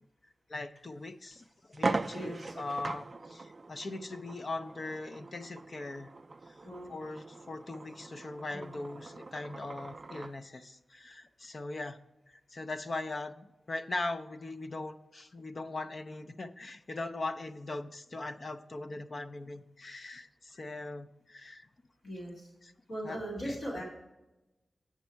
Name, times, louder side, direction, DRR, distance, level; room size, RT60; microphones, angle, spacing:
voice 1, 0.5-6.1 6.5-6.6 6.9-12.0 12.3-21.7 22.6-22.7 23.0-23.2 23.4-23.6, left 2 dB, 45° left, 8 dB, 0.5 m, -40 dB
sound 1, 0.8-0.9 1.3-1.4 1.7-10.4, right 3 dB, 35° right, 0.3 m, -40 dB
voice 2, 2.1-2.5 6.6-6.9 8.5-8.7 22.0-22.5 22.9-23.8, equal, 70° left, -5 dB, 2.4 m, -39 dB
8.2 x 6.2 x 4.4 m, 0.99 s
wide cardioid pair, 145°, 0 cm